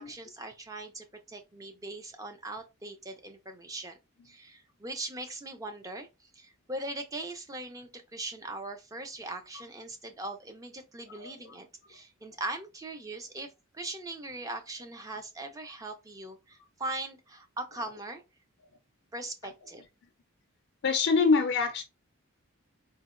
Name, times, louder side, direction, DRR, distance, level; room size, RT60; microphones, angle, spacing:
voice 1, 0.0-4.0 4.2-18.2 19.1-19.8, right 2 dB, 15° right, 0.4 m, -40 dB
voice 2, 11.1-11.5 20.8-21.8, left 4 dB, 55° left, 0.4 m, -25 dB
3.9 x 2.1 x 2.4 m
head